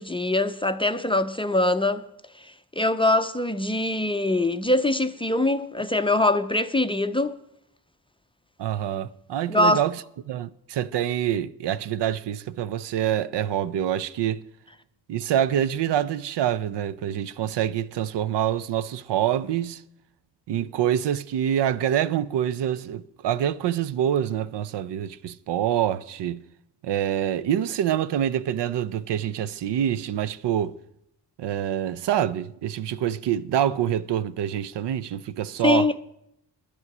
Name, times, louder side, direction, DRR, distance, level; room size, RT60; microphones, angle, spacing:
voice 1, 0.0-2.0 2.4-7.3 9.5-9.8 35.6-35.9, left 2 dB, 15° left, 0.4 m, -23 dB
voice 2, 8.6-9.9 10.3-14.4 15.1-19.8 20.5-26.4 26.8-30.8 31.4-35.9, right 10 dB, 75° right, 0.6 m, -26 dB
11.0 x 8.6 x 6.0 m
cardioid pair, 100°, 42 cm